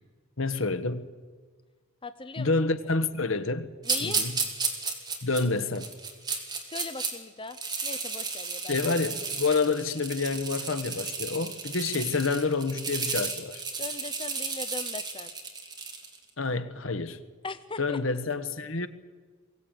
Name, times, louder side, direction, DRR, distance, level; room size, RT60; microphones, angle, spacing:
voice 1, 0.4-1.1 2.4-3.7 4.0-4.3 5.2-5.9 8.6-13.6 16.4-17.2 17.8-18.9, left 3 dB, 70° left, 1.4 m, -28 dB
voice 2, 2.0-2.5 3.8-4.2 6.7-8.8 11.9-12.0 13.8-15.3 17.4-18.0, left 3 dB, 25° left, 0.6 m, -39 dB
sound 1, 3.8-7.1 7.5-16.2, right 4 dB, 20° right, 2.7 m, -33 dB
22.5 x 17.0 x 9.2 m
head